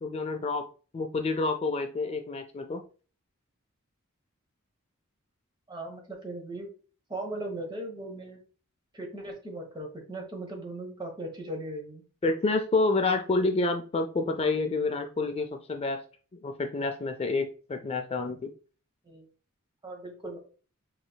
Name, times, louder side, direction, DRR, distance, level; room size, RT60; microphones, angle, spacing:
voice 1, 0.0-0.7 0.9-2.8 12.2-16.0 16.4-18.5, left 3 dB, 30° left, 5 dB, 0.4 m, -28 dB
voice 2, 5.7-6.7 7.1-8.4 8.9-12.0 19.0-19.3 19.8-20.4, right 1 dB, 20° right, 1 dB, 1.1 m, -38 dB
4.9 x 3.1 x 2.2 m, 0.37 s
head